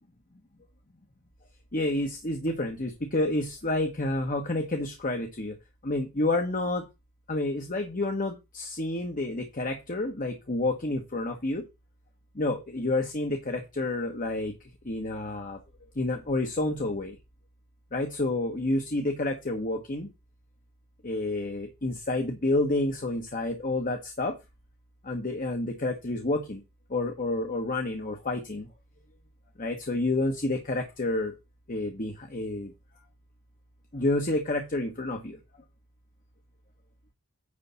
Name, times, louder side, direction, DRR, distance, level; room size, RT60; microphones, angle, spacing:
voice 1, 1.7-5.5 5.8-6.8 7.3-11.6 12.3-14.5 14.8-15.6 16.0-17.2 17.9-20.1 21.0-24.3 25.0-26.6 26.9-28.7 29.6-31.3 31.7-32.7 33.9-35.4, left 2 dB, 40° left, 4 dB, 1.1 m, -29 dB
9.8 x 3.4 x 6.9 m, 0.25 s
head